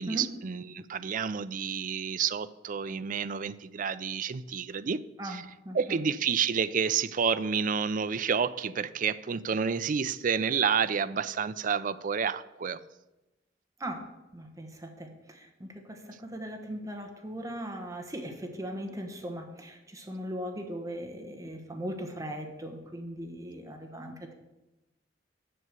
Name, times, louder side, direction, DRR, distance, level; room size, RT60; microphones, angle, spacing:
voice 1, 0.0-5.4 5.7-12.8, right 6 dB, 45° right, 14 dB, 0.4 m, -29 dB
voice 2, 5.2-6.0 13.8-14.0 14.3-24.3, equal, 20° right, 3 dB, 1.1 m, -39 dB
7.7 x 6.7 x 8.1 m, 1.0 s
head